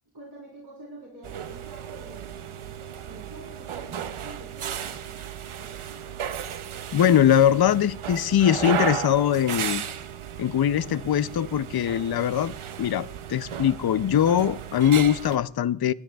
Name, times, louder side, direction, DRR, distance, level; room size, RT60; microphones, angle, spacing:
voice 1, 0.1-2.7 3.0-5.2 5.6-5.9, right 2 dB, 50° right, -5 dB, 3.8 m, -47 dB
sound 1, 1.2-15.4, right 8 dB, 85° right, 0.6 m, -34 dB
voice 2, 6.9-9.8 10.4-15.9, left 10 dB, 55° left, 17 dB, 0.5 m, -22 dB
21.5 x 10.0 x 2.3 m, 0.75 s
wide cardioid pair, 50°, 48 cm